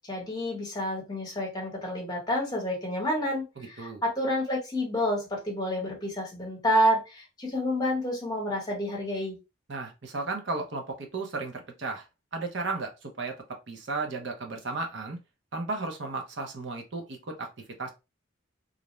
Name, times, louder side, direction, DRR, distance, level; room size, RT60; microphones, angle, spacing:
voice 1, 0.1-9.4, equal, 20° left, -1 dB, 1.0 m, -29 dB
voice 2, 3.6-4.0 9.7-12.1 12.3-13.4 13.7-15.2 15.5-17.5 17.8-17.9, right 3 dB, 60° right, 3 dB, 0.6 m, -34 dB
2.5 x 2.1 x 2.9 m, 0.26 s
head